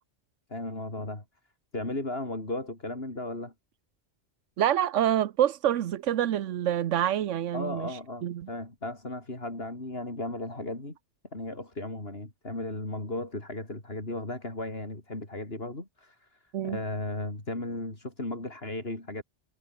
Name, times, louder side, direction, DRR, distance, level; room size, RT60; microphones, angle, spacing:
voice 1, 0.5-1.2 1.7-3.5 7.5-11.0 11.3-19.2, left 2 dB, 55° left, 5.2 m, -35 dB
voice 2, 4.6-8.5 16.5-16.8, right 11 dB, 85° right, 1.1 m, -27 dB
omnidirectional pair, 1.2 m